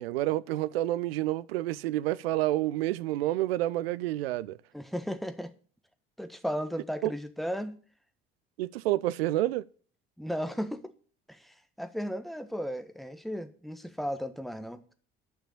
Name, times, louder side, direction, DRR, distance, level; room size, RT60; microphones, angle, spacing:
voice 1, 0.0-4.6 7.0-7.1 8.6-9.6, right 15 dB, 70° right, 0.6 m, -29 dB
voice 2, 4.7-5.5 6.2-7.8 10.2-10.9 11.3-14.8, equal, ahead, 1.4 m, -35 dB
11.0 x 6.0 x 8.2 m
figure-of-eight pair, 55°, 31 cm